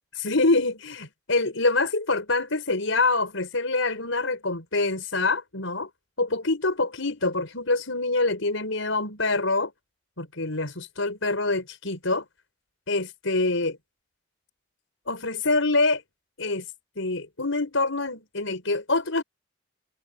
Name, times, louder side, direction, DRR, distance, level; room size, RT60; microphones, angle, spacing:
voice 1, 0.1-5.9 6.2-9.7 10.2-12.2 12.9-13.8 15.1-16.0 16.4-16.7 17.0-19.2, left 3 dB, 80° left, 5.3 m, -25 dB
head